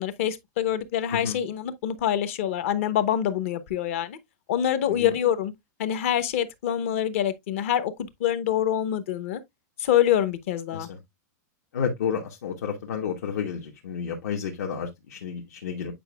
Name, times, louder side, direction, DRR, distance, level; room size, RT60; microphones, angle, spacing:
voice 1, 0.0-4.2 4.5-5.5 5.8-9.4 9.8-10.9, left 10 dB, 45° left, 0.9 m, -25 dB
voice 2, 11.7-15.9, left 7 dB, 60° left, 1.2 m, -31 dB
8.7 x 5.1 x 2.3 m
supercardioid pair, 180°, 10 cm